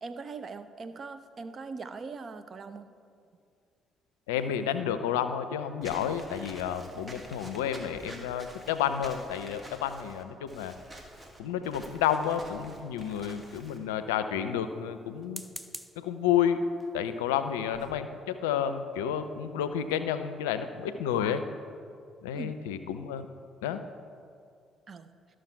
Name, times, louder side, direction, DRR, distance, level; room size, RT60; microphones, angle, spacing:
voice 1, 0.0-2.9 22.3-22.5 24.9-25.1, right 4 dB, 45° right, 10 dB, 0.6 m, -41 dB
voice 2, 4.3-10.7 11.4-15.4 16.0-16.7 16.9-21.4 22.2-23.3 23.6-23.8, left 9 dB, 85° left, 10 dB, 0.4 m, -30 dB
Walk footsteps / Squeak, 5.8-13.8, right 1 dB, 25° right, 1.7 m, -48 dB
sound 1, 12.5-13.3 15.2-16.1 16.8-17.0 17.4-17.5 17.7-18.0, equal, 5° right, 0.6 m, -46 dB
13.0 x 6.4 x 4.5 m, 2.3 s
hypercardioid pair, 50°, 0 cm